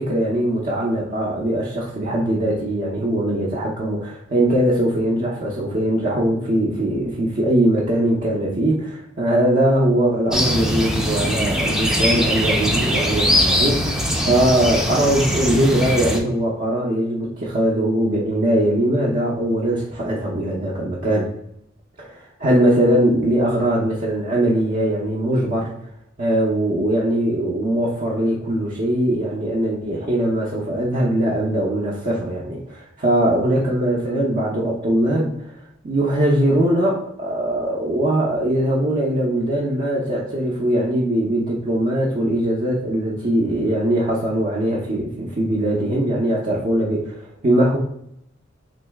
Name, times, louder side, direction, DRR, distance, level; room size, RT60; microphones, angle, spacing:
voice 1, 0.0-21.3 22.0-25.7 26.2-35.5 35.8-47.8, right 1 dB, 45° right, -5 dB, 0.6 m, -21 dB
sound 1, 10.3-16.2, equal, 5° right, 0.4 m, -21 dB
3.0 x 2.6 x 3.3 m, 0.76 s
head